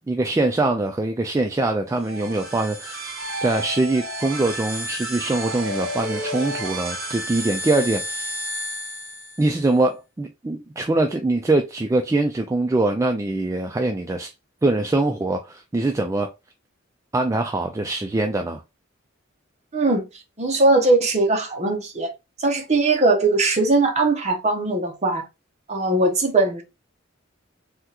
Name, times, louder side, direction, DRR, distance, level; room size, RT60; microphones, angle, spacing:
voice 1, 0.1-3.1 3.4-8.3 9.4-14.3 14.6-16.3 17.1-18.6, right 2 dB, 15° right, 0.3 m, -23 dB
sound 1, 1.9-9.6, equal, 75° right, 1.1 m, -31 dB
voice 2, 19.7-20.1 20.4-22.1 22.4-25.2 25.7-26.6, right 2 dB, 35° right, 0.8 m, -20 dB
3.5 x 2.3 x 2.8 m
head